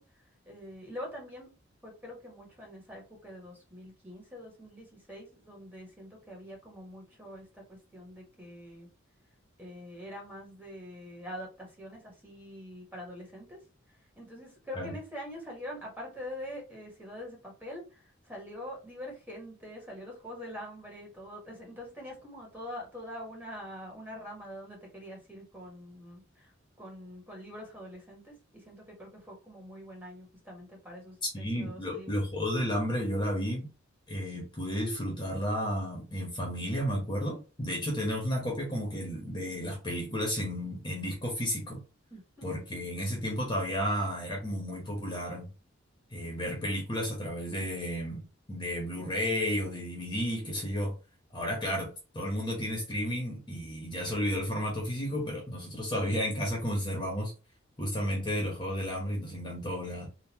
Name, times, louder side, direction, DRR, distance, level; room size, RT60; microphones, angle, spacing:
voice 1, 0.0-1.5 1.8-8.9 9.6-13.6 13.9-26.5 26.8-32.2 42.1-42.5, equal, 10° right, -2 dB, 1.5 m, -44 dB
voice 2, 31.3-33.7 34.1-41.8 42.4-45.5 46.1-50.9 51.3-57.3 57.8-60.1, equal, 25° left, -1 dB, 1.2 m, -32 dB
3.8 x 2.5 x 3.0 m, 0.32 s
head